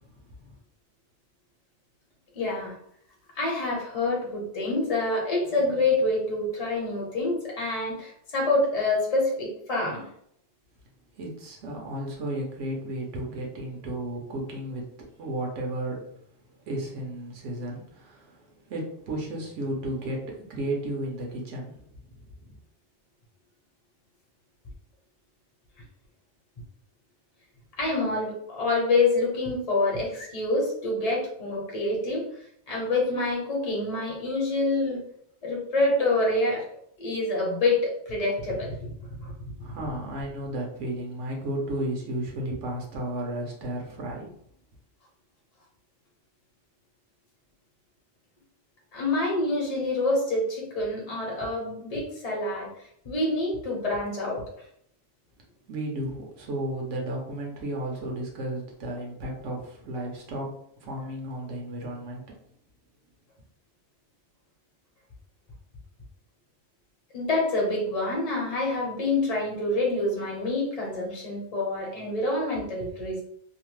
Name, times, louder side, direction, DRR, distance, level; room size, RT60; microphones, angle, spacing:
voice 1, 2.3-2.8 3.3-10.0 27.8-32.3 32.7-35.0 35.4-36.6 37.0-38.8 39.2-39.3 48.9-52.7 53.0-54.4 67.1-73.2, left 2 dB, 35° left, -3 dB, 0.8 m, -27 dB
voice 2, 11.2-14.9 15.2-16.0 16.7-21.8 22.4-22.6 39.6-44.3 55.7-60.5 60.8-62.2, right 1 dB, 90° right, -1 dB, 1.1 m, -33 dB
2.8 x 2.1 x 3.0 m, 0.69 s
omnidirectional pair, 1.2 m